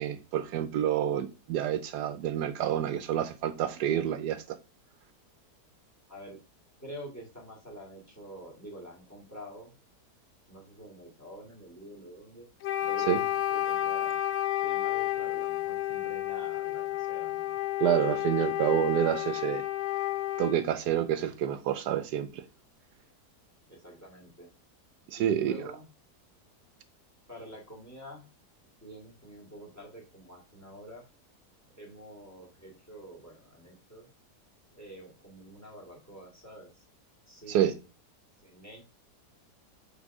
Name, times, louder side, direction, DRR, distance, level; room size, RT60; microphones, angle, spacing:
voice 1, 0.0-4.6 13.1-13.2 17.8-19.6 20.4-22.4 25.1-25.5 37.5-37.7, right 10 dB, 80° right, 1.2 m, -28 dB
voice 2, 6.8-9.7 10.5-12.4 12.8-14.2 14.6-17.6 23.7-24.5 25.2-25.9 27.3-28.2 28.8-31.0 31.7-34.1 34.7-36.7 37.3-37.8 38.4-38.8, equal, 10° left, 2.1 m, -47 dB
Wind instrument woodwind instrument, 12.6-20.6, left 14 dB, 90° left, 0.5 m, -31 dB
6.0 x 3.7 x 5.4 m
omnidirectional pair, 1.8 m